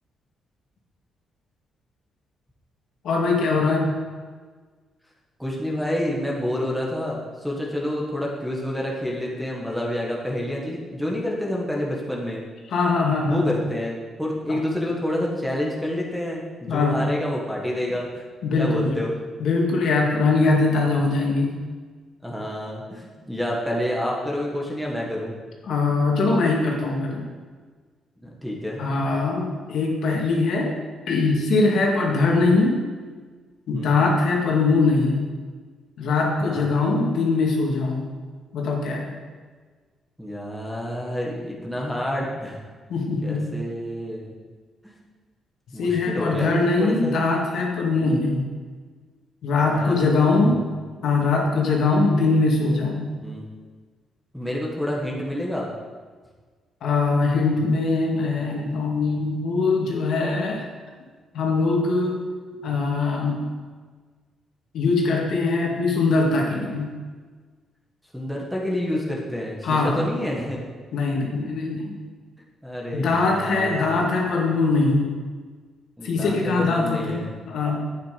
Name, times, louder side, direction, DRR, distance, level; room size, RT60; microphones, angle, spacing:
voice 1, 3.0-4.0 12.7-13.6 14.5-14.6 16.7-17.2 18.4-19.0 19.4-21.6 25.7-27.2 28.8-30.7 31.1-32.8 33.7-35.2 36.0-38.1 38.5-39.2 42.9-43.5 45.8-48.5 49.4-50.6 51.0-53.2 56.8-60.7 61.3-62.2 62.6-63.5 64.7-66.9 69.6-70.1 70.9-72.0 72.9-75.1 76.0-77.2 77.5-77.8, left 3 dB, 60° left, -1 dB, 2.1 m, -22 dB
voice 2, 5.4-12.4 13.3-18.3 18.6-19.1 22.2-25.3 28.2-28.8 33.7-34.0 36.4-36.7 40.2-42.6 43.2-44.3 44.8-44.9 45.7-47.2 49.8-49.9 50.2-50.6 53.2-53.4 54.3-55.7 68.1-70.6 72.6-73.9 76.0-77.3, left 1 dB, ahead, -3 dB, 1.5 m, -28 dB
11.5 x 9.3 x 5.1 m, 1.5 s
cardioid pair, 170°, 0 cm